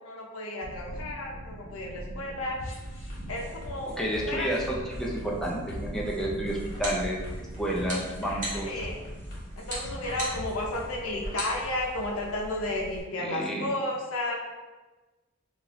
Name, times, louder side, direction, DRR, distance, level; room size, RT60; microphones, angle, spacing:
voice 1, 0.0-2.6 3.3-4.5 8.3-9.0 9.6-14.3, left 1 dB, 85° left, -1 dB, 0.6 m, -33 dB
sound 1, 0.6-12.9, right 1 dB, 65° right, 0.4 m, -43 dB
sound 2, 2.6-10.9, equal, 50° left, 1.4 m, -42 dB
voice 2, 4.0-8.7 13.2-13.7, right 1 dB, ahead, -4 dB, 0.5 m, -31 dB
sound 3, 6.5-13.0, right 1 dB, 40° right, 0.9 m, -40 dB
3.1 x 2.4 x 2.9 m, 1.2 s
head